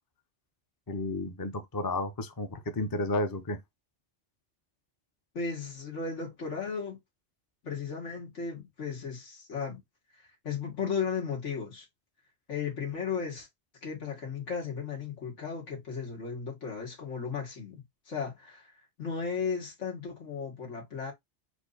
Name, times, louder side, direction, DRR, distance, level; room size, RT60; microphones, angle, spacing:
voice 1, 0.9-3.6, left 2 dB, 25° left, 0.6 m, -32 dB
voice 2, 5.3-7.0 7.6-9.8 10.4-11.9 12.5-13.5 13.8-18.7 19.0-21.1, left 6 dB, 85° left, 2.1 m, -35 dB
4.5 x 2.7 x 4.0 m
omnidirectional pair, 1.2 m